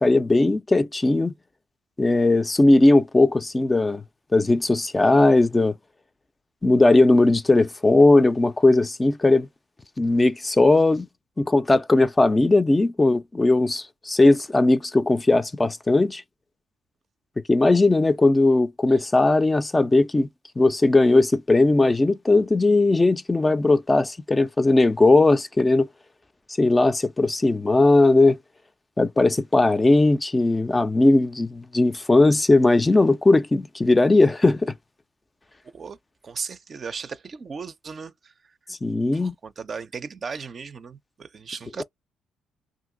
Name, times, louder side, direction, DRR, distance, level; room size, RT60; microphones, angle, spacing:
voice 1, 0.0-1.3 2.0-4.0 4.3-5.7 6.6-9.5 10.0-11.1 11.4-16.2 17.5-20.3 20.6-25.9 26.6-28.4 29.0-34.7 38.8-39.3, left 2 dB, 20° left, 0.4 m, -18 dB
voice 2, 36.2-38.5 39.1-41.8, right 5 dB, 45° right, 0.4 m, -36 dB
2.8 x 2.5 x 3.7 m
supercardioid pair, 60°, 0 cm